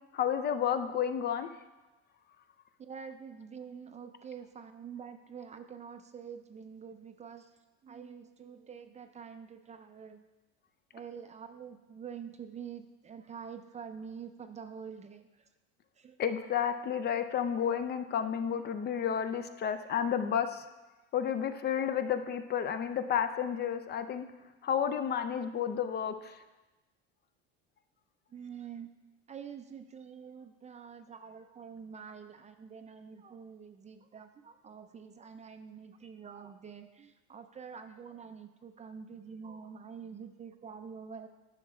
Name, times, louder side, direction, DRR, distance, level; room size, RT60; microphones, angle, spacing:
voice 1, 0.1-1.5 16.2-20.6 21.1-24.2 24.6-26.3, left 8 dB, 35° left, 9 dB, 0.5 m, -31 dB
voice 2, 2.8-7.5 7.8-10.3 10.9-15.5 16.0-16.2 28.3-28.9 29.3-41.3, right 7 dB, 25° right, 8 dB, 0.4 m, -46 dB
10.5 x 5.8 x 3.2 m, 1.1 s
supercardioid pair, 110°, 30 cm